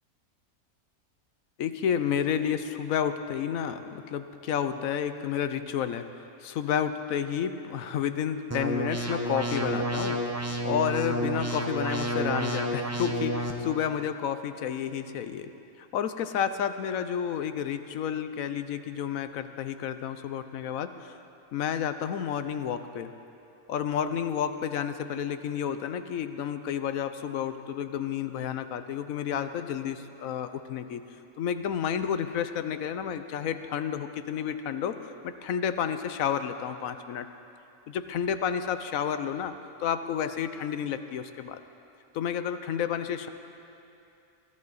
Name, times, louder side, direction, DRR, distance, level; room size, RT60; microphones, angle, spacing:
voice 1, 1.6-6.1 6.4-15.5 15.8-21.1 21.5-23.1 23.7-31.0 31.4-35.0 35.2-37.3 37.9-41.6 42.1-43.3, left 8 dB, 70° left, 10 dB, 1.1 m, -31 dB
sound 1, 8.5-13.5, right 1 dB, 10° right, 0.9 m, -30 dB
22.5 x 14.5 x 4.1 m, 2.7 s
omnidirectional pair, 1.5 m